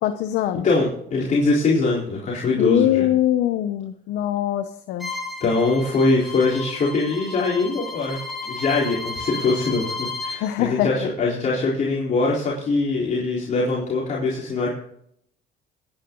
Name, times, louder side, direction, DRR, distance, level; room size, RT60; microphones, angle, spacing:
voice 1, 0.0-0.7 2.6-5.1 10.4-10.9, left 12 dB, 85° left, 8 dB, 0.9 m, -22 dB
voice 2, 0.6-3.1 5.4-8.2 8.4-14.7, left 3 dB, 45° left, -5 dB, 4.1 m, -22 dB
Bowed string instrument, 5.0-10.4, left 3 dB, ahead, 3.2 m, -33 dB
22.0 x 10.0 x 3.9 m, 0.70 s
cardioid pair, 110°, 17 cm